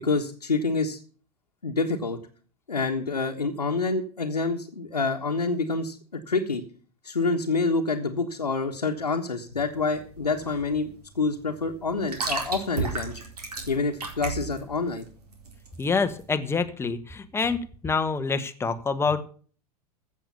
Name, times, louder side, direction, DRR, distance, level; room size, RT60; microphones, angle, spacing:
voice 1, 0.0-1.0 1.6-2.2 2.7-6.6 7.0-10.9 11.1-13.2 13.7-15.0, left 3 dB, 85° left, 0 dB, 1.4 m, -27 dB
sound 1, 9.5-16.3, right 4 dB, 75° right, 4.1 m, -34 dB
voice 2, 15.8-19.2, left 4 dB, 10° left, 9 dB, 1.4 m, -26 dB
15.5 x 7.0 x 6.9 m, 0.43 s
figure-of-eight pair, 90°, 20 cm